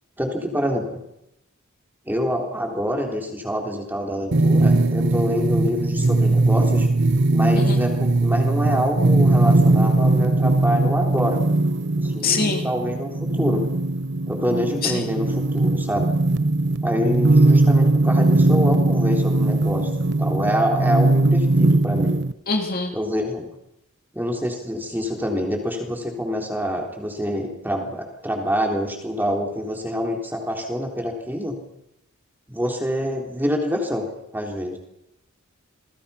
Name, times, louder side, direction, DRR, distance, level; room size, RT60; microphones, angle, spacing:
voice 1, 0.2-1.0 2.1-6.9 7.3-11.4 12.0-13.1 13.4-13.6 14.3-16.1 16.8-19.9 20.2-22.2 22.9-23.5 24.1-31.6 32.5-34.1 34.3-34.8, equal, 10° right, 1 dB, 3.9 m, -26 dB
sound 1, 4.3-22.3, right 2 dB, 55° right, 0.9 m, -19 dB
voice 2, 12.2-12.6 14.8-15.1 22.5-22.9, left 4 dB, 40° left, 2 dB, 2.7 m, -24 dB
28.5 x 20.5 x 5.9 m, 0.85 s
head